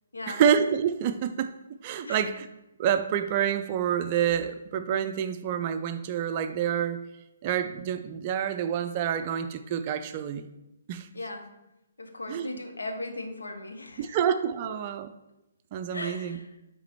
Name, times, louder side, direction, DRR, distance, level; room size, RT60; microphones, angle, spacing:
voice 1, 0.3-1.5 1.8-2.5 2.8-7.0 7.4-10.5 10.9-11.1 12.3-12.5 14.0-15.1 15.7-16.4, right 8 dB, 35° right, 9 dB, 0.4 m, -27 dB
voice 2, 11.1-11.5 12.0-14.2 15.9-16.5, left 2 dB, 80° left, 5 dB, 0.8 m, -37 dB
9.5 x 3.4 x 3.0 m, 0.91 s
figure-of-eight pair, 130°, 0 cm